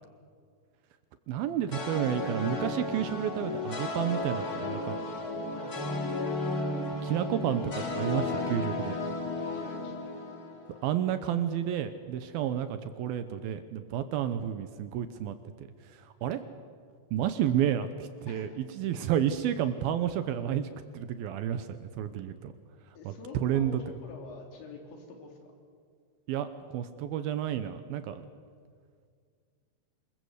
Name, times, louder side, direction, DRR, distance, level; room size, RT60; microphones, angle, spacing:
voice 1, 1.3-5.0 7.0-9.0 10.8-16.4 17.1-20.7 20.9-22.5 23.1-23.2 23.4-23.8 26.3-26.5 26.7-28.2, right 10 dB, 75° right, 11 dB, 2.3 m, -31 dB
sound 1, 1.7-11.0, left 2 dB, 30° left, 2.1 m, -34 dB
voice 2, 5.4-6.1 9.3-10.0 12.4-12.6 18.3-18.6 23.0-25.5, left 3 dB, 80° left, 3 dB, 5.6 m, -47 dB
26.0 x 21.5 x 8.1 m, 2.1 s
omnidirectional pair, 5.1 m